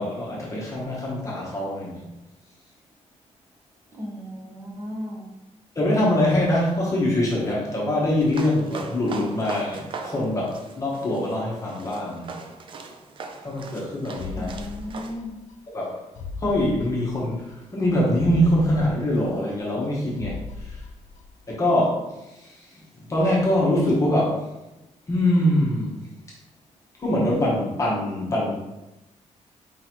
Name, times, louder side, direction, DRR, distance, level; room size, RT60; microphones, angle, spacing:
voice 1, 0.0-2.0 5.7-12.3 13.4-14.6 15.7-16.0 16.4-20.8 21.5-22.8 23.1-24.4 25.1-26.0 27.0-28.5, left 1 dB, 25° left, -5 dB, 1.0 m, -24 dB
voice 2, 3.9-5.3 14.4-15.4, left 1 dB, 20° right, -2 dB, 0.9 m, -35 dB
sound 1, 8.2-15.1, right 4 dB, 45° right, 0.4 m, -40 dB
sound 2, 14.2-15.5 15.8-15.9 16.2-17.5 17.8-17.9 18.2-19.9 20.2-21.5 21.8-21.9, left 4 dB, 80° left, 0.4 m, -38 dB
4.7 x 3.8 x 3.0 m, 1.0 s
wide cardioid pair, 180°, 12 cm